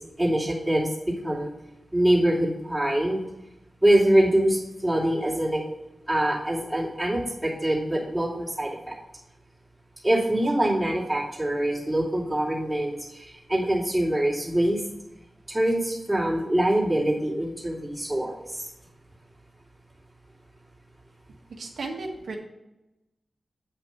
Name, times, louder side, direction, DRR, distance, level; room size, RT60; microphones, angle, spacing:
voice 1, 0.2-0.9 1.2-1.5 1.9-3.2 3.8-5.6 6.1-8.9 10.0-14.8 15.5-18.7, right 1 dB, 5° right, -5 dB, 2.6 m, -24 dB
voice 2, 21.6-22.4, right 3 dB, 80° right, 0 dB, 1.4 m, -34 dB
8.3 x 5.7 x 4.6 m, 0.96 s
wide cardioid pair, 155°, 0 cm